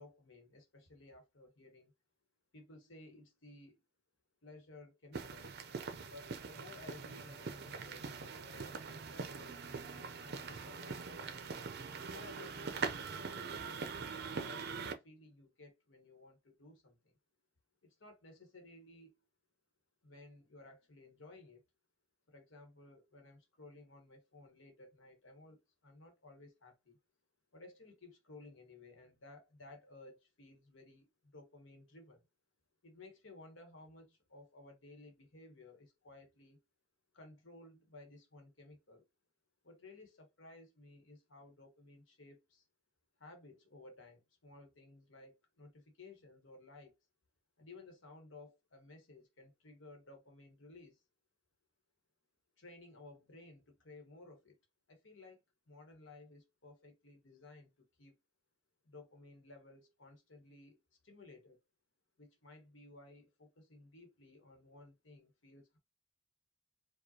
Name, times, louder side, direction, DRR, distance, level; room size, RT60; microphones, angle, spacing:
voice 1, 0.0-1.9 2.5-3.8 4.4-5.5 6.0-11.4 11.9-14.0 14.4-17.2 17.8-19.1 20.0-21.6 22.3-27.0 27.5-32.2 32.8-36.6 37.1-39.0 39.6-42.6 43.2-47.0 47.6-51.0 52.6-54.6 54.9-58.1 58.8-60.8 61.0-61.6 62.2-65.8, left 2 dB, 75° left, 1.2 m, -57 dB
sound 1, 5.1-14.9, right 5 dB, 55° right, 0.6 m, -43 dB
4.8 x 2.4 x 2.8 m
head